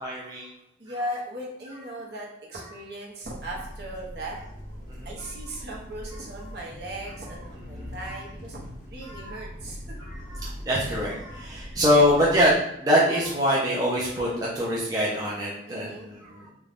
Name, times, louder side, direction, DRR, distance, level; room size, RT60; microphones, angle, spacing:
voice 1, 0.0-0.5 4.9-5.3 7.7-8.2 9.1-9.4 10.0-16.5, equal, 20° right, -6 dB, 0.4 m, -25 dB
voice 2, 0.8-4.4 5.0-8.6 8.9-10.0 11.6-11.8 15.7-16.1, right 1 dB, 55° right, -3 dB, 0.7 m, -38 dB
sound 1, 3.2-12.5, equal, 40° left, 0.5 m, -41 dB
2.5 x 2.2 x 3.2 m, 0.79 s
head